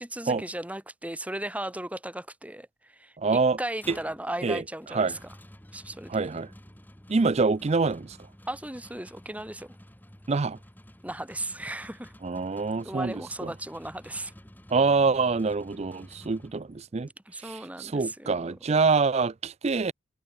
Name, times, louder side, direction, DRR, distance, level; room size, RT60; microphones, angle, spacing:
voice 1, 0.0-5.2 5.7-6.2 8.5-9.8 11.0-12.1 12.8-14.3 17.3-18.6, right 1 dB, 5° right, 2.1 m, -36 dB
voice 2, 3.2-3.6 3.9-4.0 4.4-4.6 4.9-5.2 6.1-6.5 7.1-8.2 10.3-10.6 12.2-13.5 14.7-17.1 17.4-19.9, right 4 dB, 30° right, 0.4 m, -25 dB
sound 1, 3.6-17.0, equal, 10° left, 2.5 m, -51 dB
head